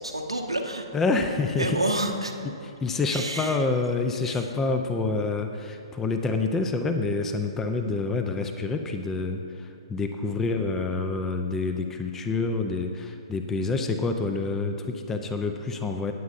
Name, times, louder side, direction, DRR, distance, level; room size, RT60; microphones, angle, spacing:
voice 1, 0.0-0.8 1.6-2.3 3.1-3.6 4.3-4.4, right 1 dB, 85° right, 2 dB, 1.1 m, -29 dB
voice 2, 0.9-1.8 2.6-16.1, left 3 dB, 10° left, 6 dB, 0.5 m, -27 dB
18.5 x 8.1 x 2.6 m, 3.0 s
figure-of-eight pair, 120°, 3 cm